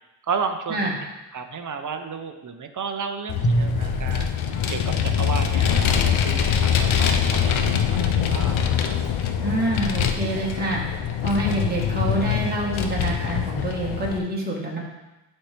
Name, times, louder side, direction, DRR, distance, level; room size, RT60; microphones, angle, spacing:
voice 1, 0.3-0.9 1.3-4.4 4.7-8.6, right 5 dB, 40° right, 6 dB, 0.8 m, -32 dB
Vehicle, 3.3-14.2, left 8 dB, 90° left, 0.7 m, -23 dB
Drum, 3.4-5.8, right 1 dB, 45° left, 1.6 m, -28 dB
voice 2, 9.4-10.8 11.2-14.8, right 1 dB, 20° right, -4 dB, 1.5 m, -26 dB
11.0 x 4.4 x 3.4 m, 1.0 s
cardioid pair, 95°, 46 cm